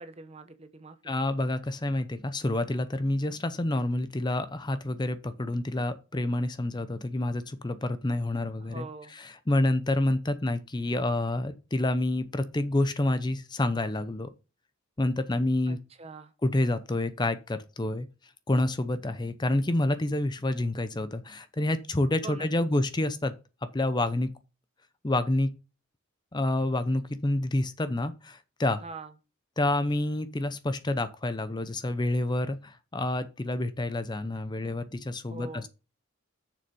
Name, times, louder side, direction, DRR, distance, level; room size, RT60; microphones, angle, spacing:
voice 1, 0.0-1.1 8.6-9.1 15.7-16.3 22.2-22.7 28.8-29.1 35.3-35.7, right 3 dB, 30° right, 0.8 m, -43 dB
voice 2, 1.0-8.9 9.1-14.3 15.0-15.8 16.4-18.1 18.5-23.3 23.6-24.3 25.0-25.5 26.3-28.8 29.6-35.7, left 1 dB, 20° left, 0.6 m, -28 dB
6.9 x 6.4 x 5.3 m
head